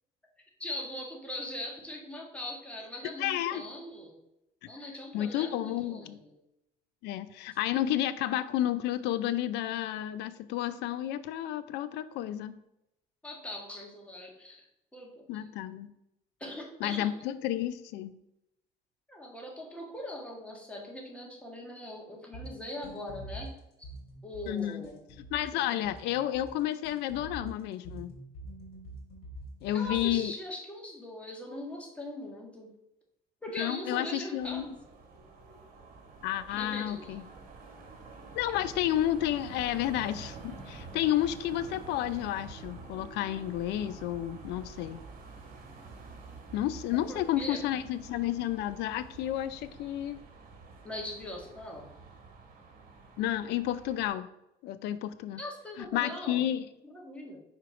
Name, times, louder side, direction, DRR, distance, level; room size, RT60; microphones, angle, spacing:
voice 1, 0.6-4.2 4.7-6.3 13.2-14.6 14.9-15.4 16.4-17.1 19.1-23.5 23.8-23.9 24.2-25.0 25.5-25.8 29.7-32.7 33.4-34.7 36.5-37.1 47.1-47.6 50.8-51.9 55.4-56.4 56.8-57.4, left 1 dB, 5° left, -1 dB, 1.6 m, -41 dB
voice 2, 3.0-3.7 5.1-6.2 7.0-12.6 15.3-15.9 16.8-18.2 24.5-24.8 25.3-28.1 29.6-30.3 33.5-34.7 36.2-37.2 38.3-45.0 46.5-50.2 53.2-54.3 54.6-55.4 55.8-56.7, left 12 dB, 85° left, 13 dB, 0.4 m, -31 dB
sound 1, 22.3-30.3, right 1 dB, 70° left, 2.3 m, -46 dB
sound 2, 34.4-54.1, right 4 dB, 55° right, 1.6 m, -48 dB
5.0 x 4.5 x 4.7 m, 0.85 s
cardioid pair, 110°, 17 cm